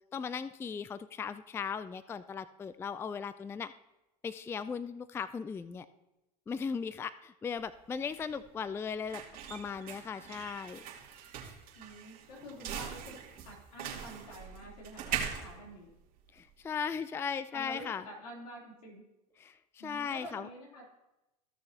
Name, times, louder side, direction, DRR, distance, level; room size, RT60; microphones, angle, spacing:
voice 1, 0.1-3.7 4.2-5.9 6.5-9.2 9.5-10.8 16.3-18.1 19.4-20.5, left 6 dB, 10° left, 15 dB, 0.3 m, -37 dB
sound 1, 7.6-16.7, right 8 dB, 45° right, 2.6 m, -42 dB
voice 2, 11.7-13.2 13.4-15.9 17.5-19.0 19.8-20.9, equal, 80° left, -2 dB, 3.2 m, -48 dB
15.5 x 6.5 x 2.8 m, 0.95 s
hypercardioid pair, 90°, 20 cm